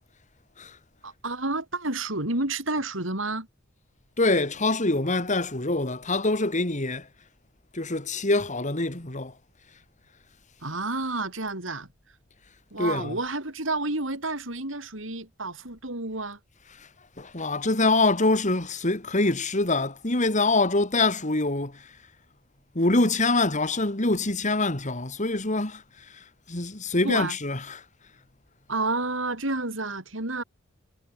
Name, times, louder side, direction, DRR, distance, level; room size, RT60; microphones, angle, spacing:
voice 1, 1.0-3.5 10.6-11.9 12.7-16.4 27.0-27.4 28.7-30.4, right 2 dB, 75° right, 6.4 m, -30 dB
voice 2, 4.2-7.1 7.7-9.3 12.8-13.2 17.2-21.8 22.7-25.8 26.5-27.8, left 2 dB, 40° left, 2.9 m, -25 dB
head